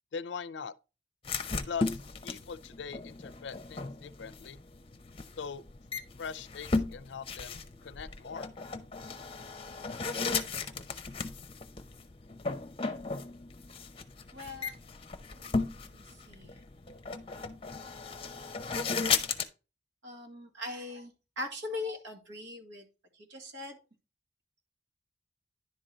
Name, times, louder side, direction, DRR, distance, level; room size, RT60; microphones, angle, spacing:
voice 1, 0.1-0.7 1.7-4.6 5.4-5.6 6.2-8.5, left 6 dB, 80° left, 0.5 m, -41 dB
sound 1, 1.2-19.5, left 4 dB, 30° left, 0.7 m, -36 dB
voice 2, 14.3-14.8 15.3-16.6 20.0-22.9 23.1-23.8, left 2 dB, 80° right, 2.2 m, -41 dB
10.5 x 3.9 x 4.3 m
head